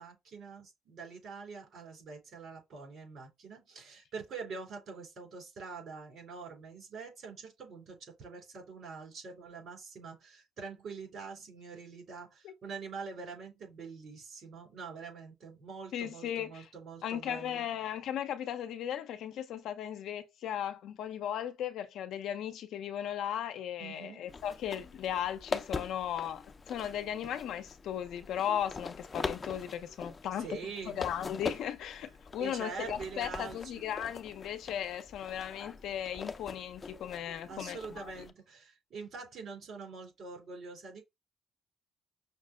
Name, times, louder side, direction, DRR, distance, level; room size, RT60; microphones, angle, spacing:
voice 1, 0.0-17.6 23.8-24.3 30.4-31.0 32.4-33.6 37.5-41.0, right 5 dB, 65° right, 3.3 m, -45 dB
voice 2, 15.9-16.7 17.0-30.6 30.9-38.3, left 10 dB, 80° left, 0.7 m, -37 dB
sound 1, 24.3-38.3, left 4 dB, 35° left, 0.5 m, -43 dB
5.7 x 2.2 x 3.7 m
cardioid pair, 90°, 0 cm